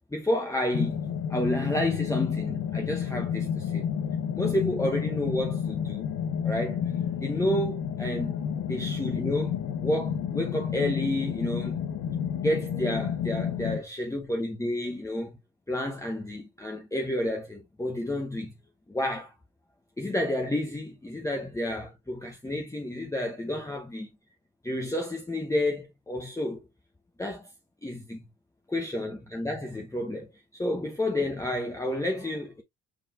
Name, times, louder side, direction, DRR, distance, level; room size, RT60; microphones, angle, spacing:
voice 1, 0.1-1.0 1.3-3.9 4.4-6.1 6.4-6.8 7.2-8.3 8.7-11.8 12.4-15.3 15.7-18.5 18.9-19.3 20.0-24.1 24.6-26.6 27.2-27.5 27.8-28.2 28.7-30.3 30.5-32.6, left 1 dB, 10° left, 0.9 m, -30 dB
sound 1, 0.7-13.8, left 8 dB, 85° left, 0.9 m, -30 dB
4.8 x 4.1 x 2.3 m
cardioid pair, 90°, 30 cm